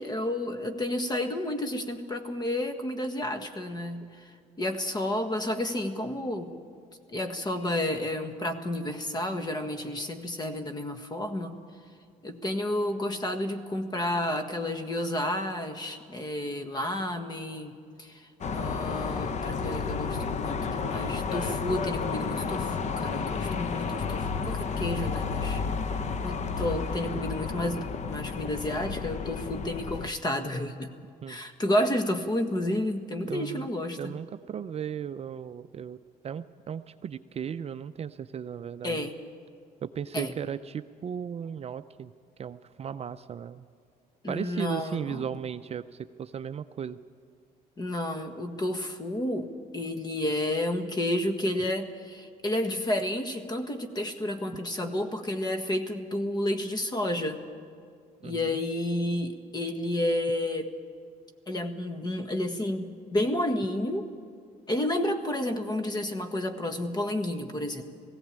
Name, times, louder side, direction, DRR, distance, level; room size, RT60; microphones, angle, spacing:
voice 1, 0.0-4.3 4.6-6.5 7.1-11.6 12.2-25.6 26.2-30.9 31.3-34.2 38.8-39.1 40.1-40.3 44.2-45.3 47.8-57.4 58.2-60.7 61.5-64.1 64.7-67.8, left 1 dB, 25° left, 8 dB, 1.6 m, -31 dB
sound 1, 18.4-30.1, left 5 dB, 45° left, 0.9 m, -31 dB
voice 2, 33.2-33.7 34.0-36.0 36.2-39.1 39.8-42.1 42.4-43.7 44.3-47.0 58.2-58.6, right 8 dB, 40° right, 10 dB, 0.5 m, -36 dB
18.0 x 16.0 x 8.9 m, 2.3 s
cardioid pair, 110°, 17 cm